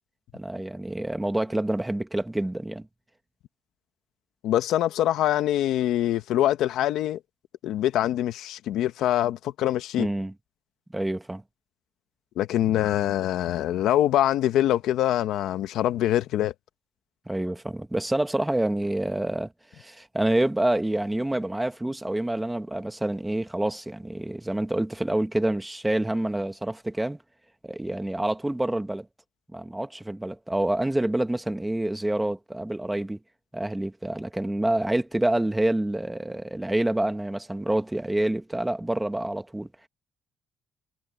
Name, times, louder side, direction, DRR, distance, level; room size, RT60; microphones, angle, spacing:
voice 1, 0.3-2.9 10.0-10.3 10.9-11.4 17.3-19.5 19.8-27.2 27.6-29.1 29.5-33.2 33.5-39.7, right 1 dB, 5° right, 1.3 m, -27 dB
voice 2, 4.4-7.2 7.6-10.1 12.4-16.5, left 12 dB, 70° left, 1.1 m, -24 dB
cardioid pair, 170°, 0 cm